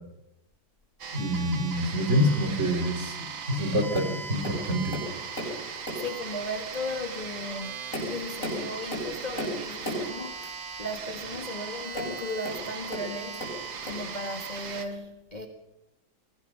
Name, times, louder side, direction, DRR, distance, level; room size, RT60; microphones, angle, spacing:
sound 1, 1.0-14.9, right 6 dB, 75° right, 2.3 m, -38 dB
voice 1, 1.1-3.1 3.5-5.0, equal, 35° right, 3.2 m, -26 dB
Tap, 3.9-4.2 4.4-5.6 5.8-6.2 6.8-7.0 7.6-10.1 11.9-13.1 13.4-14.1 14.8-14.9, equal, 40° left, 8.4 m, -35 dB
voice 2, 6.0-13.4 13.8-15.5, left 1 dB, 25° left, 1.9 m, -36 dB
23.5 x 19.5 x 5.9 m
omnidirectional pair, 2.1 m